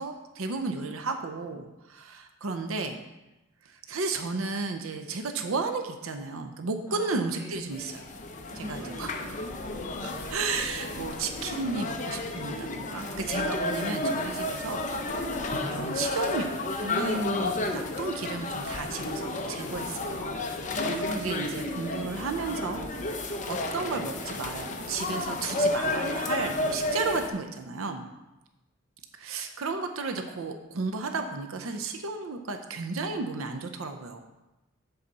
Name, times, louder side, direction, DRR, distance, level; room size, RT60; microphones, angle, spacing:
voice 1, 0.0-3.0 3.6-8.0 8.6-9.1 10.0-14.9 15.7-20.4 21.1-22.9 23.2-28.1 29.1-34.2, right 4 dB, 85° right, 6 dB, 0.7 m, -33 dB
voice 2, 6.9-7.6 8.5-9.4 20.7-21.4, equal, 15° right, -5 dB, 1.8 m, -41 dB
sound 1, 7.7-27.3, left 2 dB, 35° left, 0.7 m, -32 dB
7.8 x 4.1 x 6.7 m, 1.0 s
head